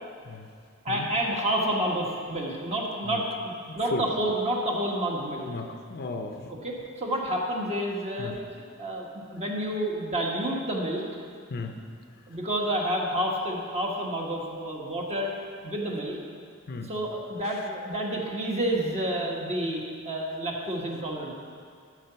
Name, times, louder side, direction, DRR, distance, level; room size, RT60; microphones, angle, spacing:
voice 1, 0.8-5.5 6.5-8.4 8.8-11.0 12.3-15.3 15.6-16.2 16.8-21.3, right 1 dB, 30° right, -1 dB, 1.4 m, -29 dB
voice 2, 5.5-6.5 8.2-8.3 11.5-11.8 16.7-16.9, left 3 dB, 50° left, 5 dB, 0.7 m, -34 dB
12.0 x 4.9 x 6.8 m, 2.2 s
head